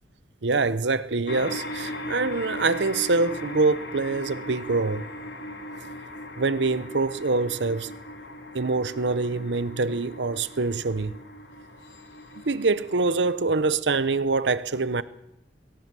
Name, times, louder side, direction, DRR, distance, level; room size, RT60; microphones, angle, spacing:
voice 1, 0.4-5.0 6.4-7.9 8.5-11.1 12.5-15.0, right 3 dB, 85° right, 0.9 m, -25 dB
sound 1, 1.3-13.3, left 1 dB, 80° left, 4.0 m, -38 dB
21.5 x 17.0 x 7.6 m
head